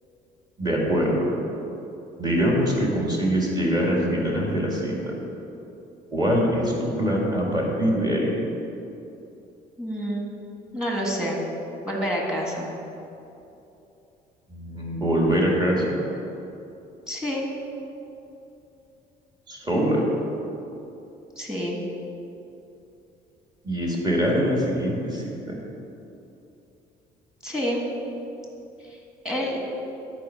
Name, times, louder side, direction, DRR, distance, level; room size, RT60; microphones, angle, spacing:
voice 1, 0.6-1.3 2.2-5.2 6.1-8.3 14.5-16.0 19.5-20.1 23.6-25.6, equal, 25° right, -2 dB, 2.0 m, -23 dB
voice 2, 9.8-10.3 10.7-11.4 11.9-12.7 17.1-17.5 21.4-21.8 27.4-27.8 28.8-29.0 29.2-29.6, equal, 5° right, -1 dB, 1.7 m, -28 dB
11.0 x 4.6 x 5.7 m, 2.9 s
cardioid pair, 110°, 17 cm